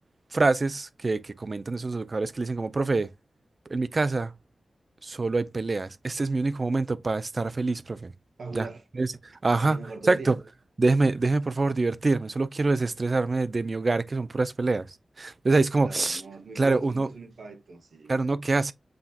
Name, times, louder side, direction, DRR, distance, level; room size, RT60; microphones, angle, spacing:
voice 1, 0.3-3.1 3.7-4.3 5.0-8.1 8.5-8.7 9.0-9.1 9.4-9.8 10.1-10.4 10.8-14.9 15.2-16.2 16.6-17.1 18.1-18.7, right 3 dB, 35° right, 0.3 m, -25 dB
voice 2, 8.4-8.8 9.6-10.4 15.8-18.1, right 3 dB, 60° right, 0.7 m, -40 dB
7.6 x 2.7 x 2.2 m
wide cardioid pair, 145°, 0 cm